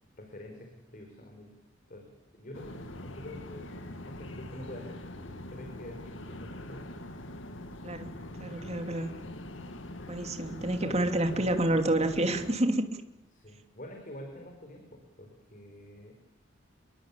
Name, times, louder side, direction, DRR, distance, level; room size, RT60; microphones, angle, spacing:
voice 1, 0.1-1.5 1.9-6.9 8.3-9.0 10.8-11.0 11.2-11.5 13.3-16.1, left 1 dB, 45° left, 4 dB, 4.8 m, -47 dB
sound 1, 2.5-12.5, left 1 dB, 90° left, 2.4 m, -43 dB
voice 2, 7.8-9.1 10.1-13.0, right 1 dB, 35° right, 6 dB, 2.8 m, -29 dB
28.0 x 22.5 x 8.6 m, 0.89 s
head